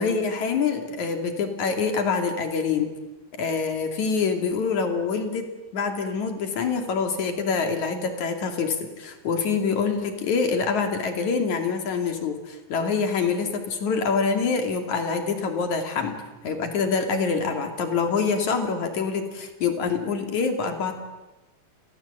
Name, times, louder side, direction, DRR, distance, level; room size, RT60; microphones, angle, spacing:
voice 1, 0.0-2.9 3.3-16.2 16.4-21.0, left 5 dB, 55° left, 5 dB, 3.9 m, -25 dB
30.0 x 22.0 x 8.3 m, 1.1 s
omnidirectional pair, 4.2 m